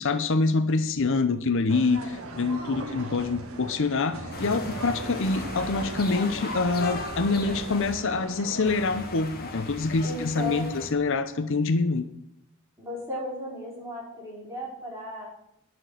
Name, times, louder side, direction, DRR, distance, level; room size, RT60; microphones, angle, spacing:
voice 1, 0.0-12.0, left 3 dB, 60° left, 10 dB, 0.7 m, -26 dB
sound 1, 1.7-8.7, right 2 dB, 75° right, 1.6 m, -39 dB
sound 2, 4.3-8.0 8.7-10.9, left 2 dB, 45° left, 1.6 m, -37 dB
voice 2, 10.0-10.8 12.8-15.3, left 1 dB, 10° right, -5 dB, 4.6 m, -35 dB
11.0 x 6.0 x 7.8 m, 0.78 s
head